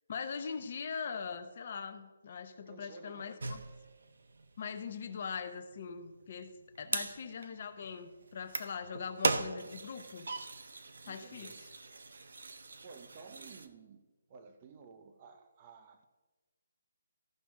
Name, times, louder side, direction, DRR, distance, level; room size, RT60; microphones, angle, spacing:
voice 1, 0.1-3.6 4.6-6.5 6.8-10.3 11.1-11.7, left 6 dB, 30° left, 0.6 m, -41 dB
voice 2, 2.7-3.3 6.8-7.1 11.0-11.6 12.8-16.1, right 5 dB, 20° right, 0.6 m, -54 dB
sound 1, 3.4-13.7, right 3 dB, 55° right, 0.7 m, -39 dB
14.5 x 5.9 x 3.7 m
hypercardioid pair, 180°, 0 cm